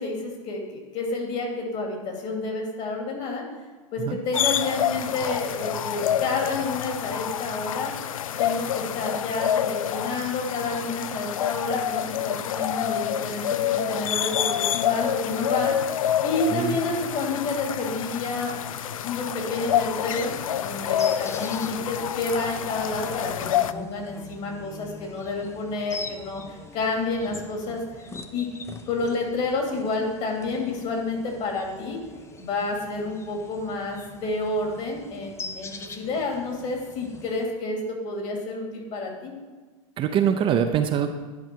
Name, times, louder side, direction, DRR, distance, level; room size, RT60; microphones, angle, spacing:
voice 1, 0.0-3.4 3.9-7.9 8.4-15.9 16.2-18.5 19.0-28.5 28.9-32.0 32.4-39.3, left 3 dB, 45° left, 1 dB, 2.5 m, -29 dB
sound 1, 4.3-23.7, left 10 dB, 85° left, 0.4 m, -27 dB
sound 2, 19.8-37.4, left 4 dB, 15° left, 0.6 m, -43 dB
voice 2, 40.0-41.1, right 8 dB, 30° right, 6 dB, 0.6 m, -23 dB
10.5 x 4.9 x 4.5 m, 1.4 s
hypercardioid pair, 110°, 17 cm